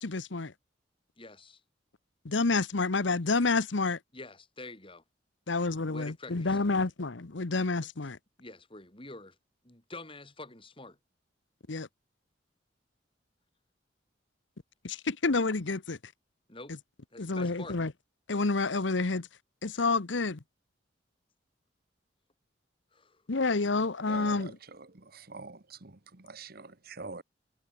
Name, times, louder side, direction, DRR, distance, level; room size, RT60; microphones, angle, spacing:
voice 1, 0.0-0.5 2.2-4.0 5.5-8.2 11.7-11.9 14.8-16.0 17.2-17.9 18.3-19.3 19.6-20.4 23.3-24.5, left 3 dB, 75° left, 1.0 m, -29 dB
voice 2, 1.2-1.6 4.1-5.0 5.8-6.7 8.4-9.4 9.6-11.0 16.5-16.8 17.1-17.8 22.9-23.2, left 2 dB, 30° left, 6.1 m, -47 dB
voice 3, 24.1-27.2, right 3 dB, 55° right, 1.5 m, -45 dB
head